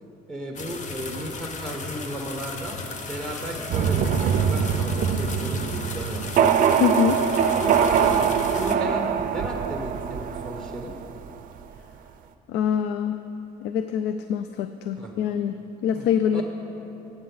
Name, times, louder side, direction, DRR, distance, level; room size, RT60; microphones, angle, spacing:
voice 1, 0.3-2.8 3.1-6.3 7.5-8.2 8.5-10.9 15.0-15.1 15.9-16.4, right 1 dB, 5° left, 1 dB, 1.2 m, -34 dB
sound 1, 0.5-8.8, left 4 dB, 45° left, 0.9 m, -35 dB
sound 2, 3.7-11.4, right 8 dB, 55° right, 0.5 m, -23 dB
voice 2, 6.8-7.2 12.5-13.2 13.6-16.4, left 8 dB, 85° left, 9 dB, 0.4 m, -25 dB
15.0 x 8.1 x 4.0 m, 3.0 s
cardioid pair, 110°, 17 cm